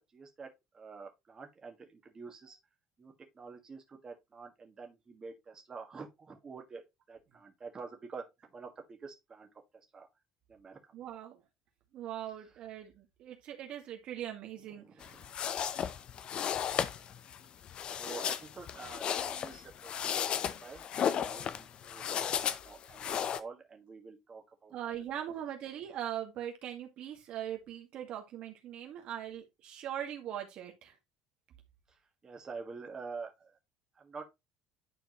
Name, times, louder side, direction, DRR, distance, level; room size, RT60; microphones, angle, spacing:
voice 1, 0.1-0.5 0.7-2.6 3.0-6.8 7.1-8.2 8.5-9.5 9.9-10.1 10.5-10.8 14.8-15.3 18.0-24.7 32.2-33.5 34.0-34.2, right 4 dB, 30° right, 1.8 m, -47 dB
voice 2, 10.9-11.4 11.9-15.2 24.7-30.9, right 10 dB, 55° right, 1.8 m, -41 dB
sound 1, 15.0-23.4, left 8 dB, 50° left, 0.7 m, -35 dB
10.5 x 4.5 x 3.1 m
hypercardioid pair, 65°, 2 cm